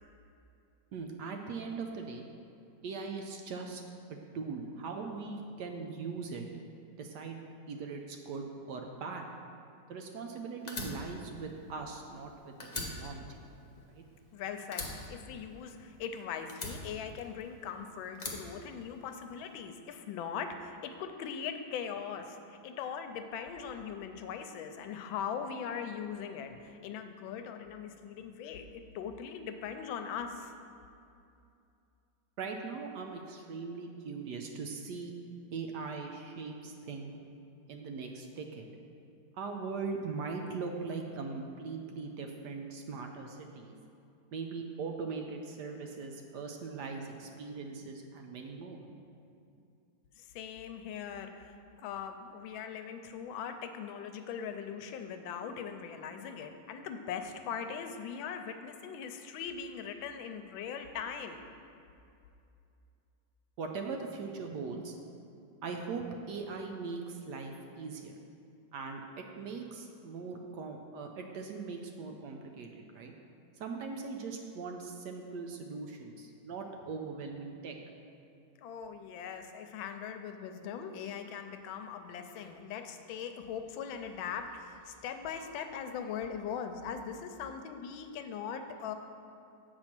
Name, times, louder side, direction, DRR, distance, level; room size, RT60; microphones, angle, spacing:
voice 1, 0.9-2.3 2.8-3.8 4.1-6.4 7.0-9.3 9.9-12.6 12.9-13.4 13.9-14.0 32.4-35.1 35.5-37.1 37.7-38.7 39.4-43.7 44.3-48.8 63.6-65.0 65.6-68.2 68.7-73.1 73.6-77.8, right 4 dB, 70° right, 3 dB, 1.1 m, -40 dB
Fire, 10.7-12.3 12.6-14.3 14.7-16.0 16.5-17.6 18.1-19.3, left 2 dB, 60° left, 0.4 m, -42 dB
voice 2, 14.3-30.5 50.2-61.4 78.6-88.9, left 7 dB, 85° left, 7 dB, 1.4 m, -40 dB
7.9 x 4.3 x 5.9 m, 2.6 s
omnidirectional pair, 2.1 m